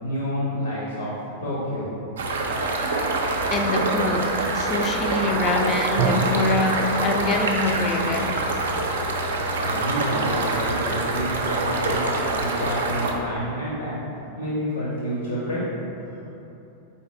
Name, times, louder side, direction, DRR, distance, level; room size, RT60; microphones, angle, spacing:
voice 1, 0.0-1.1 1.4-1.9 9.6-14.0 14.4-15.6 16.0-16.1, equal, 75° left, -7 dB, 0.7 m, -29 dB
sound 1, 2.2-13.1, right 2 dB, 65° right, 0.4 m, -25 dB
voice 2, 3.5-8.5, left 2 dB, 30° left, 4 dB, 0.3 m, -25 dB
Drum, 6.0-9.7, right 3 dB, 25° right, 0.6 m, -31 dB
4.1 x 2.7 x 3.2 m, 2.9 s
figure-of-eight pair, 90°, 0 cm